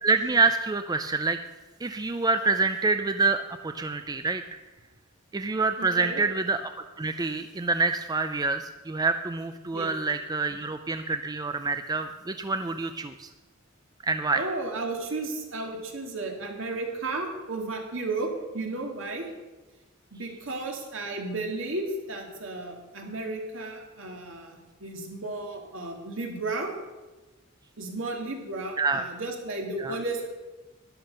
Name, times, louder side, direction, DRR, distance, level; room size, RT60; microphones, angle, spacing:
voice 1, 0.0-1.4 1.8-4.6 5.3-6.6 7.0-13.3 14.0-14.4 28.8-29.1 29.8-30.0, right 3 dB, 20° right, 9 dB, 0.4 m, -27 dB
voice 2, 5.8-6.2 9.7-9.9 14.3-19.3 20.1-26.7 27.8-30.3, right 2 dB, 70° right, 2 dB, 2.5 m, -33 dB
12.5 x 10.5 x 5.5 m, 1.2 s
head